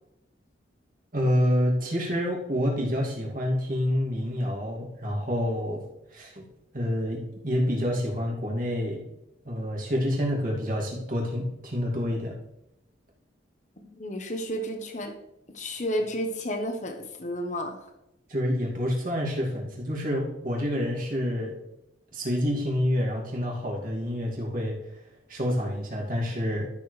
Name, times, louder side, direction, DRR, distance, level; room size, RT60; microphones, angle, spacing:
voice 1, 1.1-5.8 6.1-6.5 6.7-9.0 9.4-12.3 18.3-21.5 22.1-24.8 25.3-26.7, equal, 45° right, -2 dB, 2.4 m, -28 dB
voice 2, 13.8-15.1 15.5-17.9, equal, 40° left, 5 dB, 1.1 m, -32 dB
12.5 x 6.9 x 3.3 m, 0.88 s
head